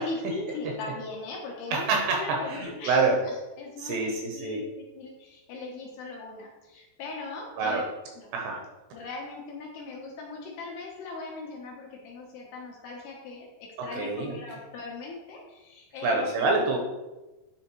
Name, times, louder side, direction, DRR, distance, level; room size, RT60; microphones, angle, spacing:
voice 1, 0.0-4.6 4.9-7.8 8.2-8.3 8.9-16.6, left 3 dB, 75° left, -2 dB, 2.5 m, -39 dB
voice 2, 1.7-3.2 3.8-4.6 7.6-7.9 8.3-8.6 13.8-14.4 16.0-16.8, right 3 dB, 80° right, 0 dB, 2.6 m, -26 dB
10.0 x 3.4 x 3.0 m, 1.1 s
omnidirectional pair, 5.3 m